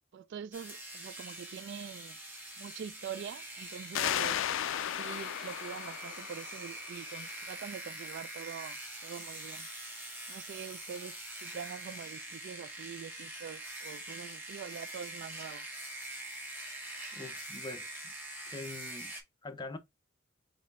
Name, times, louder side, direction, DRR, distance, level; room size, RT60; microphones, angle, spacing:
voice 1, 0.1-2.2 2.6-4.4 4.8-9.7 10.3-15.7, right 7 dB, 60° right, 0.3 m, -44 dB
sound 1, 0.5-19.2, right 1 dB, 10° right, 1.6 m, -44 dB
sound 2, 3.9-7.3, left 11 dB, 65° left, 0.3 m, -35 dB
voice 2, 17.1-18.1 18.5-19.1 19.4-19.8, left 2 dB, 20° left, 0.6 m, -44 dB
4.2 x 3.1 x 4.0 m
head